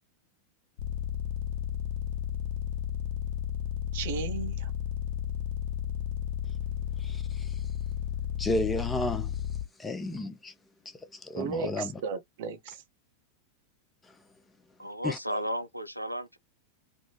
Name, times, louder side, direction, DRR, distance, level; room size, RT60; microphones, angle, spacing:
sound 1, 0.8-9.6, left 10 dB, 50° left, 0.7 m, -33 dB
voice 1, 3.9-4.7 11.3-12.8, right 6 dB, 55° right, 0.6 m, -35 dB
voice 2, 7.0-7.6 8.4-9.4 9.8-10.5 11.1-12.0 14.1-14.2 15.0-15.4, left 2 dB, 15° left, 0.6 m, -33 dB
voice 3, 14.8-16.4, equal, 90° left, 0.4 m, -34 dB
3.5 x 2.0 x 2.9 m
figure-of-eight pair, 90°, 0 cm